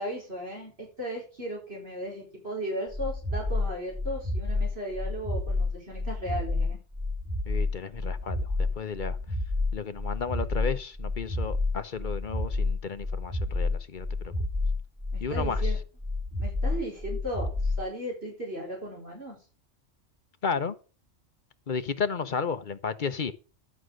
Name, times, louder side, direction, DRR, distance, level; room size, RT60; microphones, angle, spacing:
voice 1, 0.0-6.8 15.1-15.8 16.4-19.4, equal, 50° right, 5.0 m, -36 dB
sound 1, 2.9-17.8, left 2 dB, 35° right, 7.6 m, -29 dB
voice 2, 7.5-9.2 9.7-14.3 15.2-15.7 20.4-20.7 21.7-23.3, left 5 dB, 45° left, 0.8 m, -33 dB
11.5 x 6.3 x 6.3 m
omnidirectional pair, 1.3 m